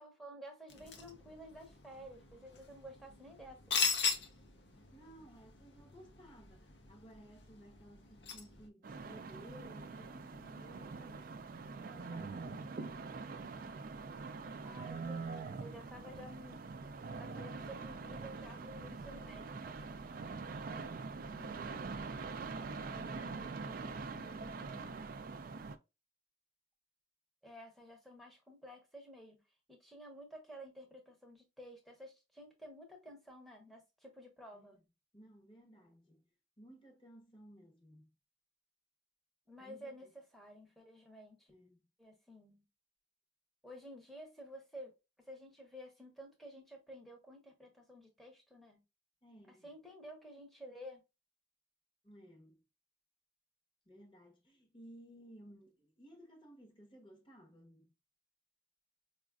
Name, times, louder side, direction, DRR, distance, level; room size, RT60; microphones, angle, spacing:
voice 1, 0.0-3.7 14.6-16.6 17.2-20.3 27.4-29.4 29.7-34.8 39.5-41.5 42.0-42.6 43.6-48.8 49.5-51.0, equal, ahead, 0.8 m, -52 dB
sound 1, 0.7-8.7, left 6 dB, 60° left, 0.7 m, -40 dB
voice 2, 4.7-11.4 11.7-13.2 21.3-25.1 34.5-34.8 35.1-36.2 36.6-38.1 39.6-40.1 41.5-41.8 49.2-49.7 52.0-52.6 53.9-57.9, equal, 25° left, 0.9 m, -58 dB
sound 2, 8.8-25.8, right 4 dB, 45° right, 0.3 m, -44 dB
4.9 x 2.4 x 2.3 m
head